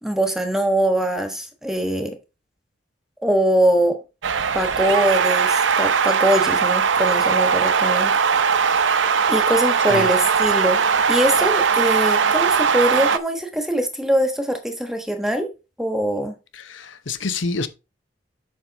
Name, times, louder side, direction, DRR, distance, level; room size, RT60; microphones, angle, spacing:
voice 1, 0.0-2.2 3.2-4.0 4.5-8.1 9.3-10.8 11.1-15.5 15.8-16.3, right 1 dB, ahead, 1.2 m, -22 dB
sound 1, 4.2-13.2, right 6 dB, 75° right, 0.7 m, -19 dB
voice 2, 16.5-17.7, left 3 dB, 80° left, 0.9 m, -27 dB
7.5 x 5.5 x 4.0 m
head